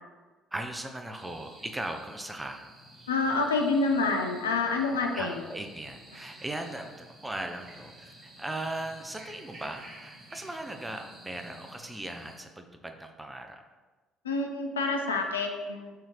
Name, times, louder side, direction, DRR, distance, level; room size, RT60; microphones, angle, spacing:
voice 1, 0.5-2.7 5.1-7.9 8.2-13.6, right 1 dB, 10° right, 5 dB, 0.4 m, -38 dB
sound 1, 1.1-12.4, right 1 dB, 45° right, 1.0 m, -51 dB
voice 2, 3.1-5.4 14.2-15.9, left 3 dB, 80° left, 3 dB, 0.3 m, -27 dB
4.8 x 2.8 x 3.0 m, 1.3 s
figure-of-eight pair, 50°, 0 cm